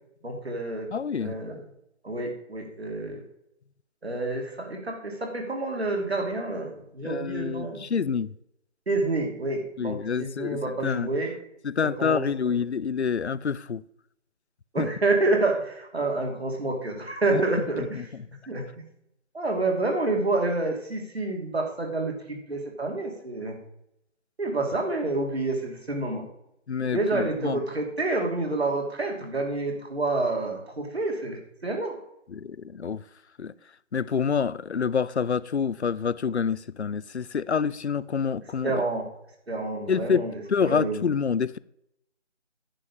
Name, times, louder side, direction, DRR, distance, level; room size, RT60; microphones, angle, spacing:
voice 1, 0.2-0.9 1.2-1.6 2.0-3.2 4.0-8.1 8.9-11.3 11.8-12.3 14.7-17.8 18.5-18.8 19.3-23.6 24.4-26.2 26.8-32.0 38.6-39.1 39.5-40.3 40.6-41.0, right 2 dB, 55° right, 2.8 m, -28 dB
voice 2, 0.9-1.4 7.0-8.3 9.8-11.1 11.6-13.8 14.8-14.9 17.3-17.4 17.8-18.0 26.7-27.6 32.3-33.0 33.4-33.5 33.9-38.7 39.9-41.6, left 6 dB, 65° left, 0.5 m, -27 dB
9.9 x 5.6 x 7.3 m
figure-of-eight pair, 175°, 37 cm